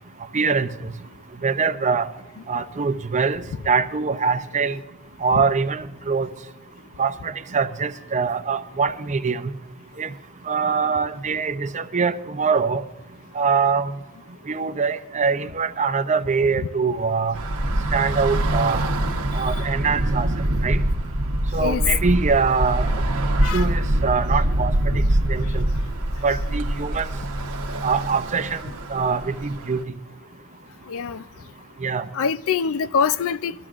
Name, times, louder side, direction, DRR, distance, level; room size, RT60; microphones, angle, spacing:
voice 1, 0.3-0.9 1.4-2.1 2.5-4.8 5.2-6.3 7.0-9.5 10.0-10.1 10.4-12.8 13.3-13.9 14.5-17.4 17.9-18.9 19.3-20.3 20.6-20.8 21.5-22.9 23.3-24.7 25.3-25.6 26.2-27.1 27.8-28.6 28.9-29.8 31.8-32.1, right 5 dB, 35° right, 0.6 m, -23 dB
Bus / Traffic noise roadway noise, 17.3-29.8, right 1 dB, 80° right, 1.1 m, -24 dB
voice 2, 30.9-31.2 32.1-33.5, left 6 dB, 65° left, 0.4 m, -24 dB
22.5 x 13.5 x 2.5 m
head